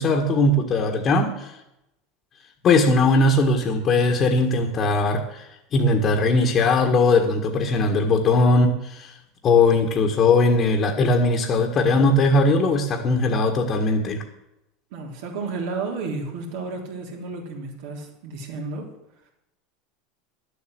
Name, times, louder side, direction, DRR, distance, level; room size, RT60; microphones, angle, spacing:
voice 1, 0.0-1.5 2.6-5.5 5.7-9.2 9.4-14.2, left 2 dB, 40° left, 2 dB, 1.7 m, -19 dB
voice 2, 14.9-18.9, right 4 dB, 70° right, 1 dB, 3.5 m, -32 dB
11.0 x 8.2 x 7.8 m, 0.88 s
hypercardioid pair, 100°, 0 cm